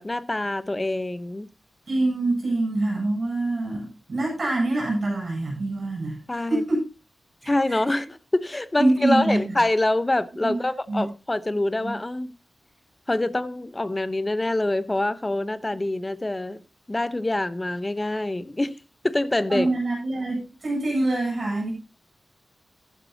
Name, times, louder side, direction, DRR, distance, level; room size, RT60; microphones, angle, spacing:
voice 1, 0.0-1.5 6.3-6.6 7.5-8.1 8.3-12.3 13.1-16.6 16.9-18.8 19.0-19.7, left 2 dB, 20° left, 0.8 m, -25 dB
voice 2, 1.9-6.9 7.4-8.0 8.8-9.6 10.4-10.6 10.9-11.1 11.5-11.9 19.5-21.7, right 2 dB, 45° right, 7.8 m, -25 dB
15.0 x 12.5 x 2.8 m
wide cardioid pair, 140°, 0 cm